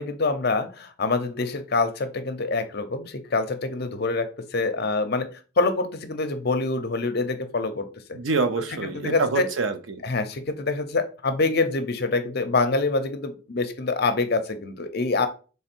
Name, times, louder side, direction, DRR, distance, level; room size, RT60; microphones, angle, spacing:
voice 1, 0.0-5.3 5.6-7.9 8.8-9.5 10.0-15.3, left 3 dB, 50° left, 8 dB, 0.6 m, -25 dB
voice 2, 8.1-10.0, right 4 dB, 65° right, 8 dB, 0.6 m, -26 dB
3.5 x 3.4 x 4.4 m, 0.36 s
head